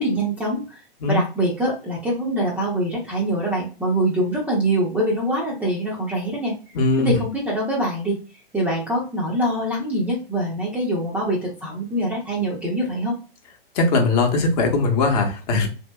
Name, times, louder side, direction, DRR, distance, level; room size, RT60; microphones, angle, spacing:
voice 1, 0.0-0.8 1.1-6.5 7.0-8.2 8.5-13.2, right 1 dB, 5° right, -4 dB, 0.4 m, -24 dB
voice 2, 6.7-7.1 13.7-15.7, left 3 dB, 40° left, 2 dB, 0.8 m, -20 dB
2.8 x 2.6 x 2.2 m, 0.34 s
hypercardioid pair, 125°, 30 cm